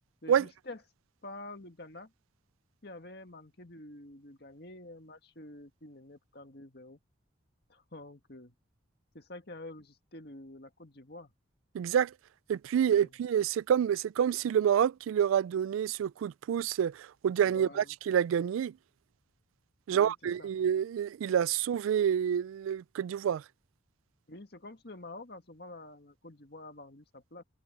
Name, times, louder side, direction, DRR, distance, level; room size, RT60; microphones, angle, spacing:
voice 1, 0.2-0.8 1.2-2.1 2.8-7.0 7.7-8.5 9.1-11.3 13.0-13.1 17.4-18.0 19.9-20.5 24.3-27.4, left 2 dB, 55° left, 1.9 m, -48 dB
voice 2, 11.7-12.1 12.5-18.7 19.9-23.4, right 8 dB, 90° right, 0.3 m, -28 dB
head